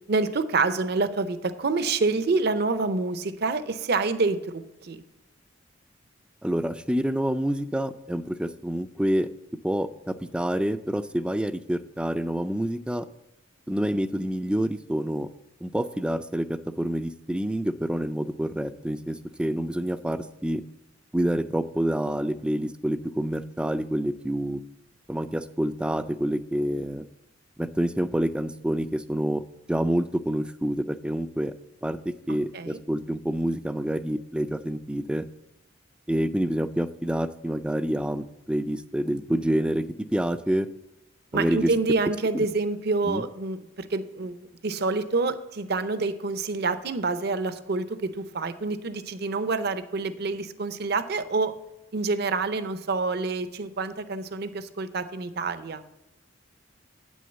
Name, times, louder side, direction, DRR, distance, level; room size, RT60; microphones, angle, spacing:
voice 1, 0.1-5.0 32.3-32.8 41.3-44.4 44.6-51.5 51.9-55.8, right 3 dB, 55° right, 12 dB, 0.6 m, -27 dB
voice 2, 6.4-9.3 9.6-13.1 13.7-15.3 15.6-20.6 21.1-24.6 25.1-27.0 27.6-29.4 29.7-31.5 31.8-32.0 32.3-35.2 36.1-39.8 40.1-40.7 41.3-41.7 42.3-42.5 43.1-43.2, right 1 dB, 5° right, 12 dB, 0.3 m, -27 dB
8.6 x 6.3 x 7.9 m, 0.91 s
head